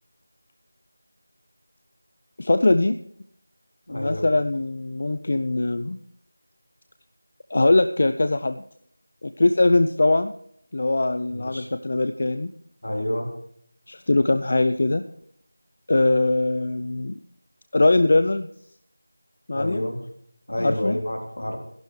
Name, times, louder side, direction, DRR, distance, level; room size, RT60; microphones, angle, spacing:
voice 1, 2.4-3.0 3.9-6.0 7.5-8.6 9.2-10.3 10.7-12.5 13.9-15.0 15.9-17.1 17.7-18.5 19.5-19.8 20.6-21.0, left 2 dB, 40° left, 10 dB, 0.5 m, -21 dB
voice 2, 3.9-4.3 11.3-11.7 12.8-13.3 19.5-20.0 20.5-21.6, left 1 dB, 70° left, 1 dB, 3.7 m, -29 dB
23.0 x 11.5 x 3.2 m, 0.68 s
figure-of-eight pair, 170°, 0 cm